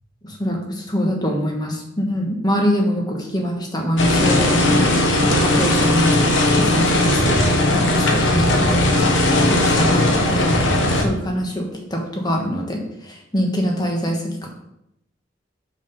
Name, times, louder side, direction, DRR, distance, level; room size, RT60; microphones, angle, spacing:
voice 1, 0.2-6.2 6.6-7.4 7.7-9.1 9.5-14.5, equal, 20° left, 1 dB, 1.2 m, -24 dB
sound 1, 4.0-11.0, left 1 dB, 75° left, 1.1 m, -17 dB
5.7 x 4.9 x 5.2 m, 0.81 s
head